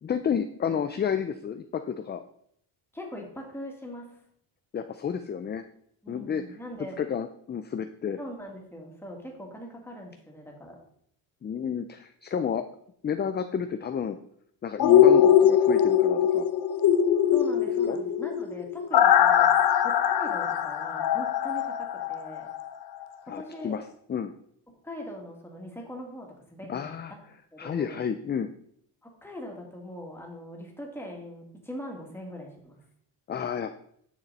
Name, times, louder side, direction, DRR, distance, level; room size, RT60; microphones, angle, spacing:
voice 1, 0.0-2.2 4.7-5.6 6.1-6.4 7.0-8.2 11.4-12.6 13.0-14.2 14.6-16.5 17.9-18.0 23.3-23.8 24.1-24.3 26.7-27.1 27.6-28.5 33.3-33.8, left 7 dB, 25° left, 9 dB, 0.3 m, -31 dB
voice 2, 2.9-4.1 6.0-7.0 8.2-10.8 17.3-19.5 19.8-22.5 23.2-23.8 24.7-26.9 27.5-28.0 29.0-32.8, equal, 5° left, 0 dB, 2.3 m, -41 dB
sound 1, 14.8-22.7 23.0-23.1, left 9 dB, 50° left, 0.8 m, -21 dB
10.0 x 6.6 x 4.1 m, 0.68 s
cardioid pair, 135°, 48 cm